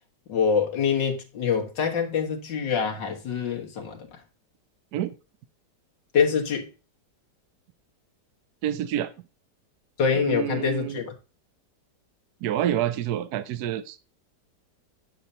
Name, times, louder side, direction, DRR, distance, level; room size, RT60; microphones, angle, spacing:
voice 1, 0.3-4.2 6.1-6.7 10.0-11.1, left 6 dB, 90° left, 2.3 m, -25 dB
voice 2, 8.6-9.1 10.1-11.0 12.4-14.0, right 11 dB, 70° right, 1.1 m, -28 dB
9.9 x 6.7 x 2.8 m
omnidirectional pair, 1.9 m